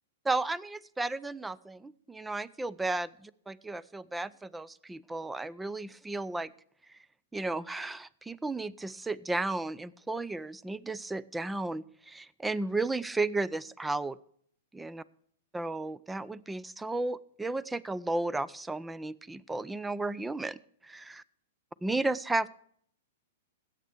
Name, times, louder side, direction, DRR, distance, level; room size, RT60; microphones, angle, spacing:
voice 1, 0.3-6.5 6.9-7.0 7.3-14.2 14.7-15.0 15.5-21.2 21.8-22.5, right 2 dB, 10° right, 20 dB, 0.4 m, -34 dB
20.5 x 8.7 x 3.3 m, 0.63 s
figure-of-eight pair, 110°, 0 cm